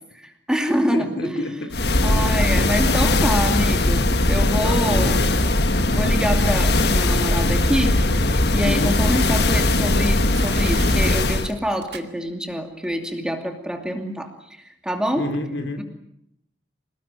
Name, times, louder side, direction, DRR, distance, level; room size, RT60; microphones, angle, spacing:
voice 1, 0.1-1.5 2.0-5.2 5.9-7.9 8.5-15.3 15.8-15.9, equal, 5° right, 4 dB, 2.6 m, -26 dB
voice 2, 0.9-1.9 2.5-2.8 4.6-5.4 8.6-9.1 15.1-15.8, left 1 dB, 75° left, 7 dB, 3.3 m, -29 dB
sound 1, 1.7-11.5, left 2 dB, 60° left, 1.6 m, -19 dB
Crushing, 10.3-12.5 12.8-12.9, right 7 dB, 65° right, 2.3 m, -39 dB
27.5 x 19.5 x 9.0 m, 0.78 s
head